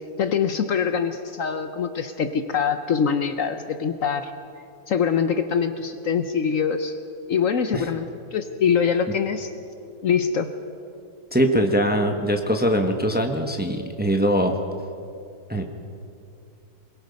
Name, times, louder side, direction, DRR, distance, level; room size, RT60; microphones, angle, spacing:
voice 1, 0.2-4.3 4.9-7.0 7.3-9.5 10.0-10.5, left 7 dB, 60° left, 9 dB, 1.1 m, -24 dB
voice 2, 11.3-14.6 15.5-15.6, equal, 5° right, 4 dB, 1.1 m, -22 dB
22.5 x 22.0 x 5.3 m, 2.5 s
omnidirectional pair, 1.7 m